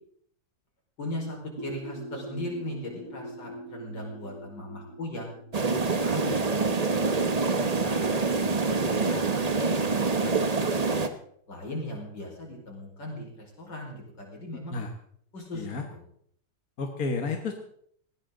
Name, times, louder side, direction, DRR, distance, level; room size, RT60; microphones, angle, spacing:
voice 1, 1.0-5.3 5.9-8.3 8.6-11.1 11.5-14.8 15.3-16.0, left 1 dB, 75° left, -1 dB, 5.5 m, -38 dB
sound 1, 1.6-7.1, right 1 dB, 70° right, 4.4 m, -43 dB
sound 2, 5.5-11.1, right 4 dB, 30° right, 0.8 m, -26 dB
voice 2, 16.8-17.5, left 4 dB, 55° left, 4 dB, 1.9 m, -31 dB
19.5 x 16.5 x 3.9 m, 0.65 s
omnidirectional pair, 1.9 m